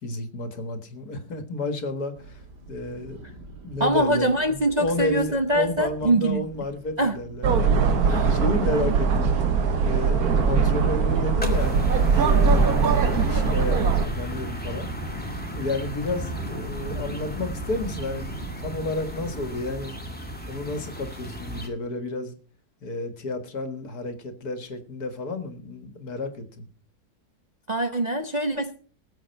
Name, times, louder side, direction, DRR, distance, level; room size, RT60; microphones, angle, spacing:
voice 1, 0.0-9.4 9.8-14.9 15.6-20.0 20.5-22.3 22.8-26.7, left 2 dB, 65° left, 2.1 m, -31 dB
sound 1, 2.2-19.5, right 3 dB, 85° right, 2.7 m, -41 dB
voice 2, 3.8-6.5 7.0-7.2 8.1-8.4 8.7-8.9 27.7-28.8, right 1 dB, 35° right, 0.7 m, -24 dB
sound 2, 7.4-14.1, right 5 dB, 65° right, 1.6 m, -21 dB
sound 3, 11.4-21.7, equal, 5° left, 2.1 m, -35 dB
19.5 x 7.8 x 4.5 m
omnidirectional pair, 1.8 m